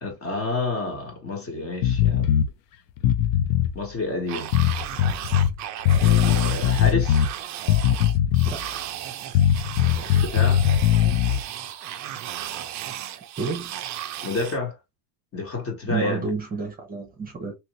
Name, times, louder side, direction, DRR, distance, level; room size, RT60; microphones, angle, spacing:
voice 1, 0.0-2.3 3.7-4.5 6.0-7.3 10.0-10.7 14.2-14.8 15.3-16.3, left 3 dB, 30° left, 1.3 m, -29 dB
sound 1, 1.8-2.5 3.0-3.7 4.5-5.5 5.8-7.3 7.7-8.6 9.3-11.4, left 10 dB, 45° left, 0.5 m, -20 dB
sound 2, 4.3-14.6, right 11 dB, 40° right, 0.5 m, -35 dB
voice 2, 8.4-8.9 13.4-13.7 15.8-17.6, right 4 dB, 20° right, 0.9 m, -30 dB
2.9 x 2.5 x 3.0 m
supercardioid pair, 125°, 48 cm